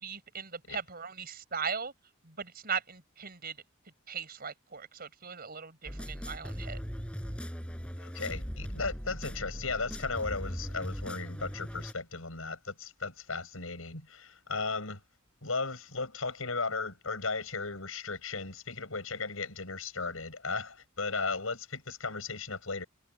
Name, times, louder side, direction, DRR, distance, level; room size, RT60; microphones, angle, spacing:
voice 1, 0.0-1.9 2.2-3.6 4.1-6.8, right 6 dB, 45° right, 4.5 m, -38 dB
sound 1, 5.9-11.9, equal, 5° left, 5.6 m, -39 dB
voice 2, 8.0-15.0 15.4-22.8, left 4 dB, 80° left, 7.0 m, -36 dB
head